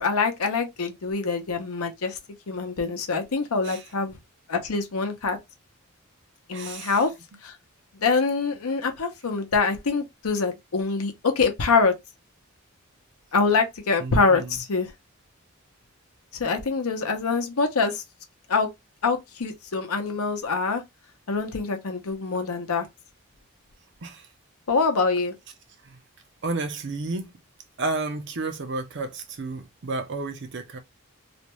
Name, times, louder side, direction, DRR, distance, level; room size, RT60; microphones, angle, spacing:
voice 1, 0.0-2.2 2.5-4.2 4.5-5.4 6.5-7.1 7.4-7.5 8.0-11.9 13.3-14.9 16.4-18.0 18.5-18.7 19.0-20.8 21.3-22.9 24.7-25.3, left 4 dB, 80° left, 0.7 m, -25 dB
voice 2, 6.5-7.0 14.0-14.6 24.0-24.3 25.8-26.0 26.4-27.3 27.8-30.8, right 3 dB, 50° right, 0.5 m, -31 dB
2.5 x 2.2 x 3.0 m
head